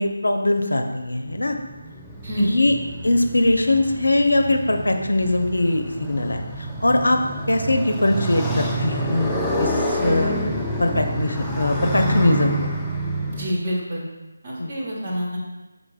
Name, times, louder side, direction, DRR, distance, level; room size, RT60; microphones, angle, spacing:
voice 1, 0.0-1.6 2.4-2.7 3.0-7.2 7.5-9.3 9.6-10.3 10.8-12.7 14.6-14.7, left 2 dB, 75° left, 5 dB, 0.4 m, -21 dB
Motorcycle, 1.0-13.5, right 1 dB, ahead, 0.3 m, -28 dB
voice 2, 2.2-2.5 13.2-14.0 14.4-15.4, equal, 30° right, -4 dB, 0.9 m, -27 dB
4.6 x 4.0 x 2.3 m, 1.1 s
figure-of-eight pair, 160°, 0 cm